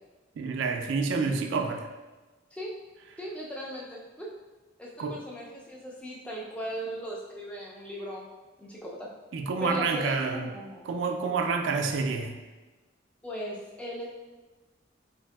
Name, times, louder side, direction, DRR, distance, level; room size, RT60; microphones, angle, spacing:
voice 1, 0.4-1.9 5.0-5.2 9.3-10.5 10.8-12.4, right 4 dB, 75° right, 4 dB, 0.3 m, -28 dB
voice 2, 3.2-4.3 4.8-8.3 8.6-9.1 9.6-10.9 13.2-14.1, equal, 5° left, -4 dB, 0.3 m, -38 dB
3.1 x 2.6 x 2.2 m, 1.2 s
head